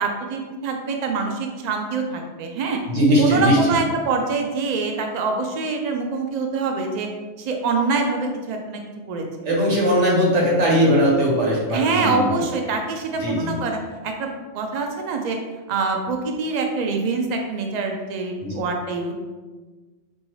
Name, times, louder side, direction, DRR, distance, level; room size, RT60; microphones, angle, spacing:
voice 1, 0.0-2.8 3.2-7.1 7.4-8.8 9.1-9.2 11.7-15.4 15.7-19.1, right 4 dB, 55° right, 3 dB, 0.5 m, -25 dB
voice 2, 2.9-3.7 9.4-12.4 13.1-13.6 18.4-18.5, equal, 90° right, -4 dB, 1.4 m, -19 dB
4.4 x 2.7 x 3.0 m, 1.3 s
omnidirectional pair, 1.2 m